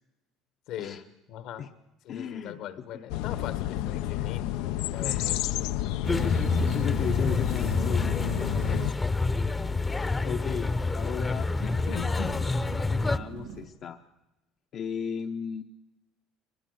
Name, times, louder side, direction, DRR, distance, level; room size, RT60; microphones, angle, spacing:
voice 1, 0.7-1.7 2.0-5.5 8.6-8.9 11.6-12.5, left 9 dB, 65° left, 13 dB, 1.4 m, -40 dB
voice 2, 2.1-2.6 3.2-3.3 5.0-5.4 6.2-8.1 10.2-11.5 12.9-14.0 14.7-15.6, left 7 dB, 45° left, 6 dB, 0.8 m, -35 dB
sound 1, 3.1-8.9, left 13 dB, 80° left, 0.6 m, -30 dB
sound 2, 6.0-13.2, left 3 dB, 15° left, 0.8 m, -28 dB
sound 3, 9.0-13.7, right 8 dB, 80° right, 3.9 m, -49 dB
22.5 x 21.0 x 6.5 m, 1.0 s
cardioid pair, 145°, 0 cm